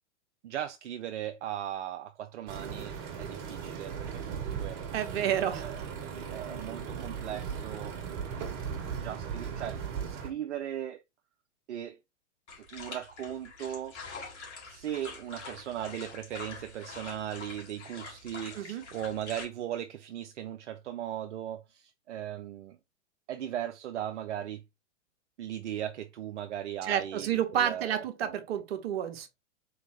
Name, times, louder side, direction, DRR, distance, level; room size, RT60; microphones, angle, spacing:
voice 1, 0.4-4.8 5.3-8.0 8.4-9.8 10.1-11.0 11.7-12.0 12.7-14.0 14.7-22.8 23.3-24.6 25.4-28.4, right 11 dB, 75° right, 0.5 m, -38 dB
sound 1, 2.5-10.3, right 7 dB, 40° right, 1.3 m, -37 dB
voice 2, 4.9-5.7 18.5-18.8 26.9-29.3, right 10 dB, 55° right, 1.1 m, -30 dB
sound 2, 12.5-19.4, left 4 dB, 70° left, 2.1 m, -45 dB
4.1 x 3.5 x 3.1 m
hypercardioid pair, 105°, 35 cm